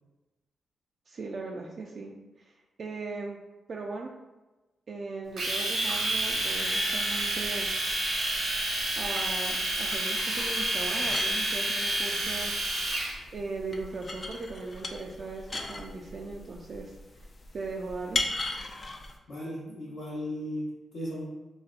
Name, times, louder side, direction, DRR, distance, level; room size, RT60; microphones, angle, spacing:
voice 1, 1.1-2.5 2.8-3.4 3.7-4.1 4.9-7.7 9.0-12.6 13.3-17.0 17.5-18.2, right 3 dB, 55° right, 0 dB, 0.3 m, -38 dB
Domestic sounds home sounds, 5.4-13.1, right 1 dB, 80° right, 0.9 m, -29 dB
sound 1, 6.2-19.2, left 2 dB, 35° left, 0.3 m, -40 dB
voice 2, 19.3-21.3, equal, 70° left, -10 dB, 0.9 m, -36 dB
3.9 x 2.1 x 2.4 m, 1.1 s
cardioid pair, 85°, 0 cm